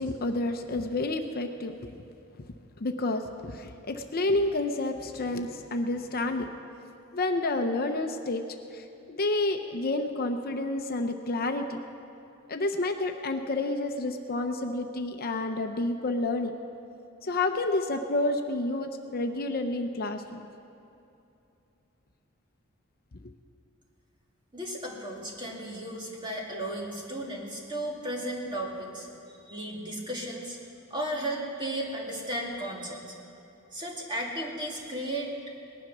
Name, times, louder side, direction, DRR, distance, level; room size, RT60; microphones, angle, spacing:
voice 1, 0.0-2.0 2.8-6.5 7.1-8.4 8.7-11.8 12.5-16.6 17.2-20.4, left 2 dB, 45° left, 6 dB, 0.7 m, -29 dB
voice 2, 24.5-29.1 29.4-30.6 30.9-33.1 33.7-35.3, right 1 dB, 25° right, -2 dB, 2.3 m, -34 dB
19.0 x 11.0 x 6.1 m, 2.8 s
head